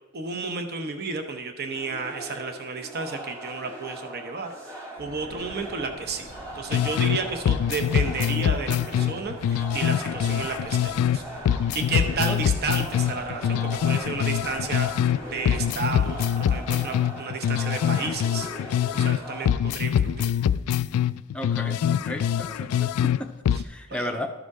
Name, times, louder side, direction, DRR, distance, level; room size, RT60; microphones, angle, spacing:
voice 1, 0.1-4.5 5.0-6.3 6.5-11.2 11.7-20.3 23.5-23.6 23.9-24.2, right 4 dB, 50° right, 5 dB, 0.8 m, -32 dB
sound 1, 1.7-19.5, right 1 dB, 15° right, 1.7 m, -41 dB
sound 2, 5.0-16.4, right 1 dB, 70° right, 2.6 m, -44 dB
sound 3, 6.7-7.2 7.4-11.2 11.4-15.2 15.4-19.2 19.4-23.2 23.4-23.6, left 9 dB, 90° left, 0.3 m, -24 dB
voice 2, 21.3-22.9 23.2-23.3 23.6-24.3, left 1 dB, 5° left, 5 dB, 0.5 m, -34 dB
12.5 x 5.0 x 4.8 m, 1.0 s
head